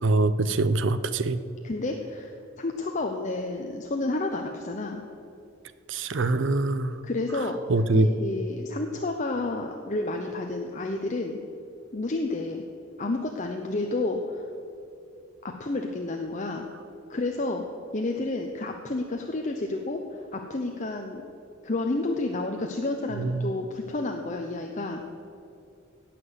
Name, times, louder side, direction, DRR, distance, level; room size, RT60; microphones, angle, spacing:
voice 1, 0.0-1.4 5.9-6.9 7.3-8.1 23.2-23.5, right 2 dB, 65° right, 13 dB, 0.6 m, -24 dB
voice 2, 1.6-5.0 7.0-7.6 7.9-11.4 11.9-12.7 13.0-14.5 15.4-16.7 17.1-17.6 17.9-21.2 21.6-25.0, left 2 dB, 35° left, 3 dB, 0.7 m, -30 dB
17.0 x 6.0 x 8.1 m, 2.6 s
head